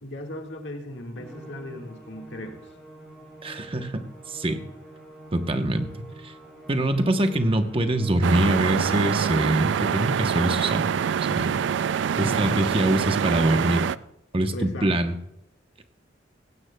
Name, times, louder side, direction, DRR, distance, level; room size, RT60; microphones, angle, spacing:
voice 1, 0.0-2.6 12.1-12.8 14.5-14.9, left 1 dB, 70° left, 2 dB, 1.7 m, -36 dB
Musical instrument, 1.1-9.6, right 1 dB, ahead, 5.6 m, -46 dB
voice 2, 3.4-4.6 5.3-5.9 6.2-6.3 6.7-10.9 11.3-11.5 12.2-13.8 14.3-15.1, right 1 dB, 30° right, 7 dB, 0.9 m, -24 dB
sound 1, 8.2-14.0, right 7 dB, 70° right, 0.3 m, -25 dB
16.5 x 16.5 x 2.2 m, 0.81 s
head